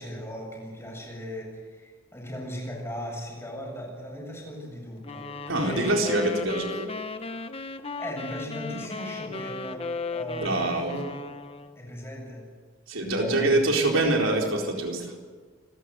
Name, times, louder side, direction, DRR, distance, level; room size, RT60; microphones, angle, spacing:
voice 1, 0.0-6.0 8.0-11.1 11.7-12.5 12.9-13.6, equal, 15° left, -1 dB, 7.9 m, -37 dB
sound 1, 5.0-11.9, left 4 dB, 30° left, 0.9 m, -36 dB
voice 2, 5.5-6.9 10.4-10.9 12.9-15.1, right 2 dB, 85° right, 0 dB, 4.1 m, -25 dB
28.5 x 14.0 x 8.1 m, 1.5 s
head